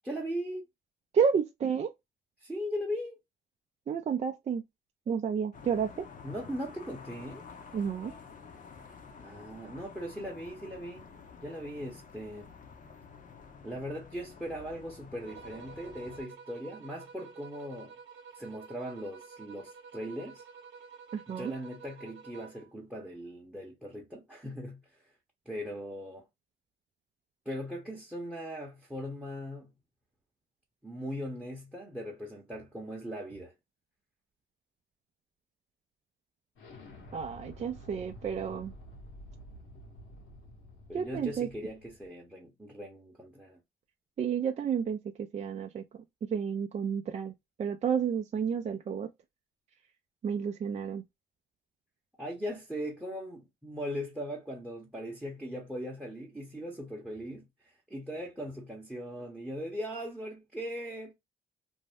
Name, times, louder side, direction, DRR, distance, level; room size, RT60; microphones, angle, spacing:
voice 1, 0.0-0.7 2.4-3.2 6.2-7.5 9.2-11.1 11.4-12.5 13.6-18.0 18.3-20.4 21.3-25.0 25.5-26.3 27.4-29.7 30.8-33.5 40.9-43.6 52.2-61.1, equal, 5° right, 0.8 m, -39 dB
voice 2, 1.1-1.9 3.9-4.6 5.1-6.0 7.7-8.1 21.1-21.5 37.1-38.7 40.9-41.5 44.2-45.8 46.3-47.3 47.6-49.1 50.2-51.0, right 7 dB, 35° right, 0.4 m, -31 dB
sound 1, 5.5-16.2, left 5 dB, 40° left, 0.7 m, -50 dB
sound 2, 15.2-22.7, right 6 dB, 70° right, 0.7 m, -50 dB
Explosion, 36.6-42.1, equal, 85° left, 1.2 m, -50 dB
2.6 x 2.0 x 3.2 m
cardioid pair, 90°, 20 cm